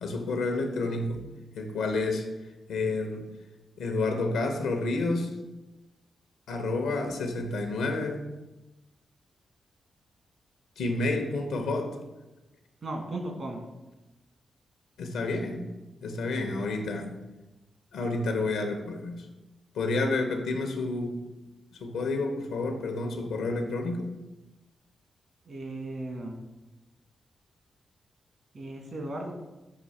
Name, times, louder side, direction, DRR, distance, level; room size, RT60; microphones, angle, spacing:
voice 1, 0.0-1.3 1.5-2.3 2.7-3.3 3.8-5.3 6.5-8.3 10.8-12.0 15.0-15.6 16.0-17.1 17.9-19.3 19.7-21.2 21.7-24.1, left 2 dB, 90° left, 5 dB, 0.8 m, -30 dB
voice 2, 12.8-13.6 25.4-26.4 28.5-29.3, right 1 dB, 60° right, 2 dB, 1.5 m, -36 dB
6.8 x 2.8 x 5.4 m, 1.1 s
cardioid pair, 60°, 0 cm